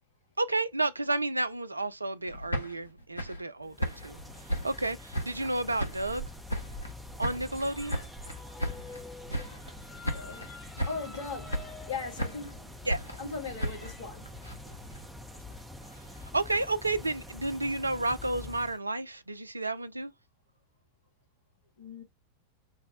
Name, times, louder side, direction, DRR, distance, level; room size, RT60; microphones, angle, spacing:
voice 1, 0.4-4.2 4.6-6.3 7.2-8.0 12.9-13.0 16.2-20.1, right 2 dB, 80° right, 0.3 m, -31 dB
sound 1, 2.2-5.5 5.8-6.9 7.2-9.0 9.3-9.8 10.0-10.5 10.8-11.2 11.5-12.5 12.9-15.1, equal, 85° left, 0.8 m, -36 dB
sound 2, 3.7-18.8, left 1 dB, ahead, 0.6 m, -45 dB
sound 3, 5.1-14.1, left 4 dB, 20° left, 1.0 m, -51 dB
voice 2, 9.8-10.5 10.8-12.7 13.2-14.3 14.6-14.8 15.5-15.6 21.8-22.0, left 4 dB, 60° left, 1.6 m, -39 dB
3.9 x 2.0 x 2.8 m
figure-of-eight pair, 90°, 0 cm